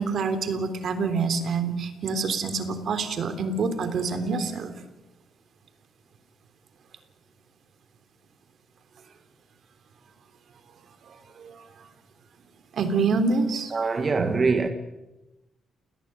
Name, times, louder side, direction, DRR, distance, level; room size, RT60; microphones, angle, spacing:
voice 1, 0.0-4.7 11.1-11.7 12.7-13.7 14.2-14.3, right 4 dB, 55° right, 3.5 m, -27 dB
voice 2, 13.7-14.7, right 4 dB, 30° right, 1.7 m, -23 dB
29.0 x 18.0 x 9.3 m
cardioid pair, 125°, 0 cm